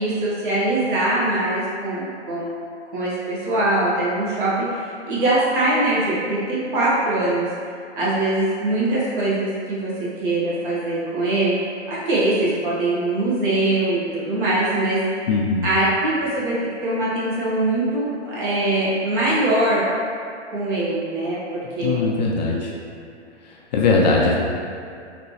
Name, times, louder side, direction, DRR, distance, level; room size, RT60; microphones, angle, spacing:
voice 1, 0.0-2.5 2.9-7.5 8.0-11.6 11.9-15.3 15.6-19.8 20.5-22.1 22.5-22.6, right 2 dB, 45° right, -7 dB, 1.3 m, -22 dB
voice 2, 15.3-15.7 21.8-22.7 23.4-24.4, left 3 dB, 40° left, -2 dB, 0.4 m, -20 dB
4.0 x 2.9 x 3.0 m, 2.4 s
figure-of-eight pair, 115°, 35 cm